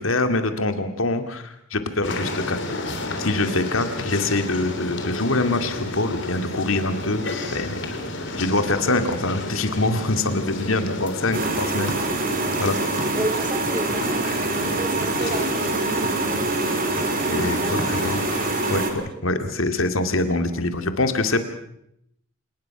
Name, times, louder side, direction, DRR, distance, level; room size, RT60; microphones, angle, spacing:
voice 1, 0.0-2.6 3.2-7.2 7.5-8.0 8.4-11.9 12.6-12.8 17.3-18.2 18.7-18.8 19.2-21.4, left 2 dB, 80° left, 8 dB, 2.3 m, -24 dB
sound 1, 2.0-18.8, left 2 dB, 60° left, 3.5 m, -31 dB
sound 2, 11.3-18.9, right 2 dB, 45° right, 3.4 m, -25 dB
voice 2, 13.1-16.7 17.6-17.9 19.0-19.1, right 1 dB, 25° right, 8 dB, 2.8 m, -32 dB
28.0 x 19.5 x 6.0 m, 0.75 s
head